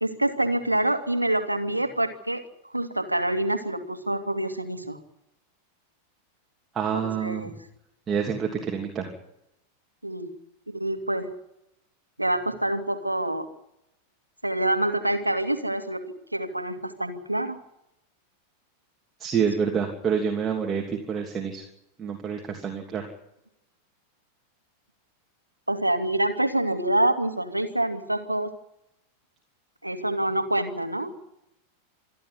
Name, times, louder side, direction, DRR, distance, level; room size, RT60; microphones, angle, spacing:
voice 1, 0.0-5.0 6.9-7.5 10.0-10.3 10.7-11.3 12.2-13.5 14.4-16.0 16.3-17.6 25.7-28.5 29.8-31.2, right 1 dB, 85° right, 7 dB, 2.3 m, -26 dB
voice 2, 6.7-7.5 8.1-9.1 19.2-21.6 22.0-23.1, right 7 dB, 20° right, 1 dB, 3.0 m, -27 dB
27.5 x 11.0 x 10.0 m, 0.83 s
figure-of-eight pair, 90°, 0 cm